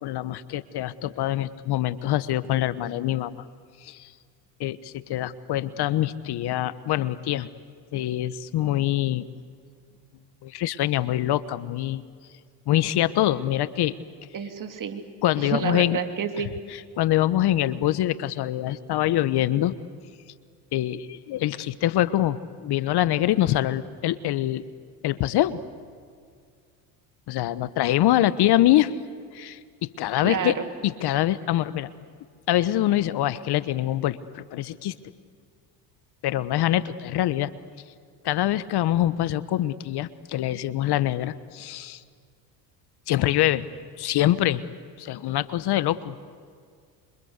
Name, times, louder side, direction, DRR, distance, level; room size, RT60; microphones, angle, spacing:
voice 1, 0.0-3.4 3.8-4.1 4.6-7.5 7.9-9.3 10.4-12.0 12.7-13.9 15.2-16.0 16.7-19.8 20.7-24.6 25.0-25.6 27.3-28.9 29.3-30.6 30.8-31.9 32.5-34.9 36.2-37.5 38.2-42.0 43.1-43.6 44.0-44.6 45.0-46.2, left 13 dB, 55° left, 15 dB, 1.2 m, -24 dB
voice 2, 14.3-15.0 15.4-16.5 30.2-30.7, right 7 dB, 40° right, 7 dB, 3.1 m, -29 dB
27.5 x 25.0 x 8.2 m, 2.1 s
hypercardioid pair, 80°, 48 cm